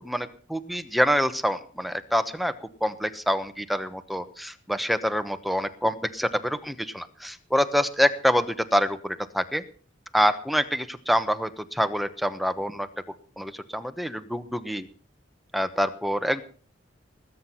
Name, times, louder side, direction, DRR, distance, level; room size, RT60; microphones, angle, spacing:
voice 1, 0.0-2.5 2.8-8.5 8.7-9.6 10.1-12.9 13.4-14.9 15.5-16.4, equal, ahead, 10 dB, 1.0 m, -26 dB
20.0 x 9.5 x 5.8 m, 0.42 s
head